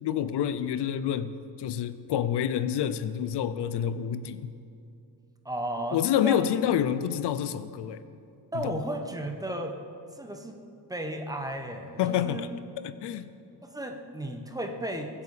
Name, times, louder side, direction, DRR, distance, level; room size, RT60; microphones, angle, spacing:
voice 1, 0.0-4.5 5.9-8.0 8.5-8.8 12.0-12.5 12.8-13.3, left 9 dB, 75° left, 13 dB, 0.7 m, -28 dB
voice 2, 5.4-6.0 6.2-6.5 8.5-9.7 10.2-10.5 10.9-12.4 13.6-15.2, right 1 dB, 10° right, 4 dB, 1.2 m, -34 dB
23.0 x 8.6 x 5.0 m, 2.6 s
cardioid pair, 145°, 41 cm